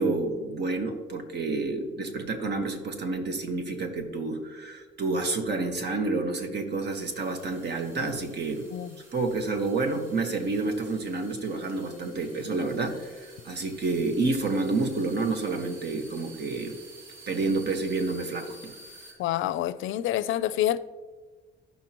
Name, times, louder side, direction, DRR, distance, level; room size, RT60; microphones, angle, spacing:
voice 1, 0.0-8.7 9.1-16.8 17.3-18.8, right 3 dB, 60° right, 1.5 m, -29 dB
sound 1, 6.9-19.1, right 2 dB, 80° right, 2.7 m, -51 dB
voice 2, 19.2-20.8, left 12 dB, 80° left, 0.5 m, -27 dB
15.0 x 5.6 x 3.0 m
cardioid pair, 90°, 20 cm